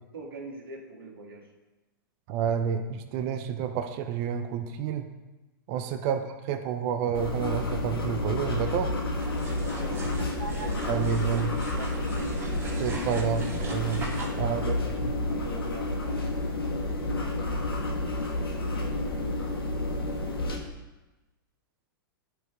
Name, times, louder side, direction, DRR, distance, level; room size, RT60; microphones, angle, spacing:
voice 1, 0.1-1.5 9.6-11.5 11.8-12.9 13.4-13.6 14.3-15.0 15.3-16.4, right 2 dB, 80° right, -2 dB, 1.9 m, -45 dB
voice 2, 2.3-5.0 5.7-8.9 10.9-11.5 12.8-14.1 14.4-14.8 15.0-15.1, right 8 dB, 45° right, 8 dB, 0.7 m, -29 dB
sound 1, 7.1-20.6, left 2 dB, 85° left, 1.4 m, -30 dB
sound 2, 9.2-14.3, right 1 dB, 20° right, 2.3 m, -39 dB
13.5 x 5.2 x 2.4 m, 1.1 s
hypercardioid pair, 110°, 12 cm